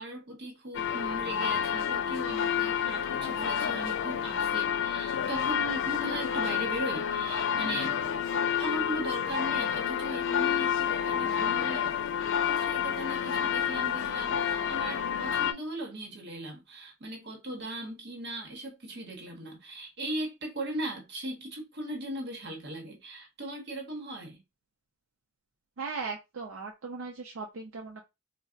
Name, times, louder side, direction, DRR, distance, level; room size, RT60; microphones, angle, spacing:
voice 1, 0.0-8.2 8.6-24.4, right 1 dB, 50° right, 0.9 m, -38 dB
sound 1, 0.7-15.5, left 8 dB, 60° left, 0.3 m, -29 dB
voice 2, 25.8-28.0, right 4 dB, 70° right, 0.5 m, -38 dB
3.9 x 2.0 x 2.4 m
head